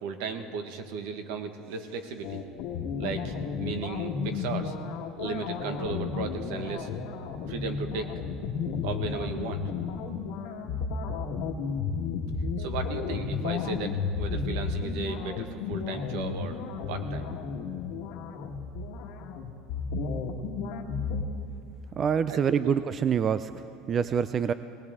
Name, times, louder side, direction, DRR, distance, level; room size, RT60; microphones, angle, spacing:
voice 1, 0.0-2.4 3.0-4.7 5.2-6.9 7.5-8.2 8.8-9.7 12.6-16.6 16.9-17.3 22.3-22.7, right 5 dB, 75° right, 7 dB, 1.3 m, -35 dB
sound 1, 2.2-21.2, left 5 dB, 70° left, 1.4 m, -33 dB
voice 2, 22.0-23.5 23.9-24.5, right 7 dB, 30° right, 13 dB, 0.3 m, -25 dB
19.5 x 19.0 x 3.6 m, 2.6 s
cardioid pair, 145°, 0 cm